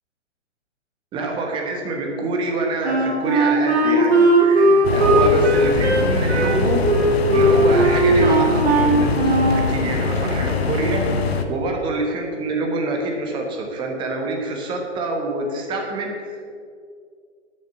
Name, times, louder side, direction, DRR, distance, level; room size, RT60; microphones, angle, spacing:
voice 1, 1.1-6.9 7.3-11.1 11.5-16.5, right 2 dB, 15° right, 1 dB, 1.1 m, -26 dB
Wind instrument woodwind instrument, 2.8-9.7, right 1 dB, 60° right, 2.3 m, -18 dB
sound 1, 4.8-11.4, left 4 dB, 55° left, 1.1 m, -22 dB
9.1 x 6.5 x 7.4 m, 2.2 s
figure-of-eight pair, 135°, 36 cm